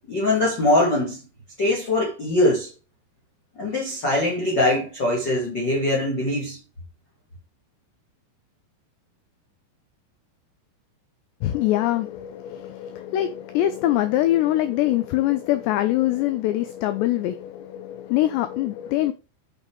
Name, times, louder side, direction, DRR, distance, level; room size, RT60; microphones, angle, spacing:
voice 1, 0.1-1.2 1.6-2.7 3.6-6.6, left 1 dB, 35° left, 1.8 m, -22 dB
voice 2, 11.4-19.1, left 14 dB, 85° left, 2.4 m, -23 dB
9.1 x 6.4 x 3.1 m
omnidirectional pair, 5.8 m